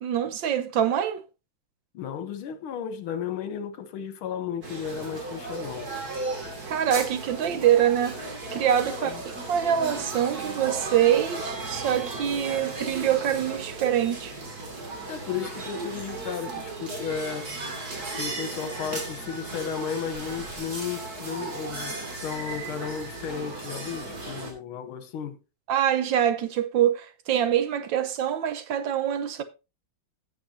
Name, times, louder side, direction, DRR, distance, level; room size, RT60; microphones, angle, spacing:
voice 1, 0.0-1.2 6.6-9.1 9.5-14.3 25.7-29.4, right 10 dB, 65° right, 1.4 m, -25 dB
voice 2, 1.9-5.9 8.9-9.2 15.1-17.5 18.1-25.4, left 7 dB, 75° left, 1.9 m, -34 dB
sound 1, 4.6-24.5, right 2 dB, 45° right, 2.9 m, -36 dB
16.5 x 7.1 x 2.8 m
omnidirectional pair, 2.3 m